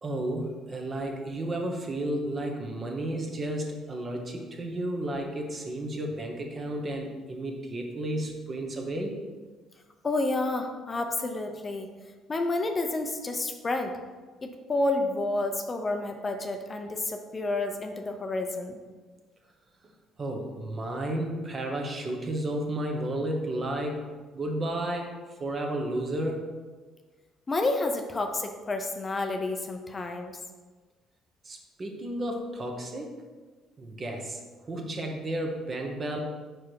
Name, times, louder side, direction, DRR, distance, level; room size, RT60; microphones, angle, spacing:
voice 1, 0.0-9.2 20.2-24.1 24.3-26.4 31.4-33.1 33.8-34.4 34.7-36.2, right 1 dB, 35° right, 2 dB, 1.1 m, -32 dB
voice 2, 10.0-11.9 12.3-14.0 14.4-18.8 27.5-30.3, left 2 dB, 30° left, 5 dB, 0.6 m, -30 dB
4.8 x 4.8 x 4.6 m, 1.4 s
cardioid pair, 90°, 0 cm